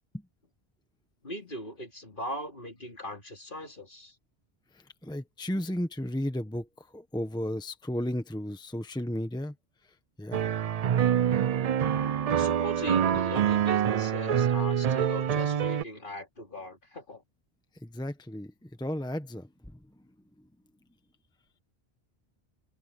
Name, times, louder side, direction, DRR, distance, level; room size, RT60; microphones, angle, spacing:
voice 1, 1.2-4.2 11.2-17.2, left 1 dB, 55° left, 3.5 m, -40 dB
voice 2, 4.7-9.5 10.2-10.8 17.8-19.8, left 1 dB, 5° left, 1.1 m, -34 dB
sound 1, 10.3-15.8, right 9 dB, 55° right, 0.4 m, -26 dB
open air
omnidirectional pair, 1.1 m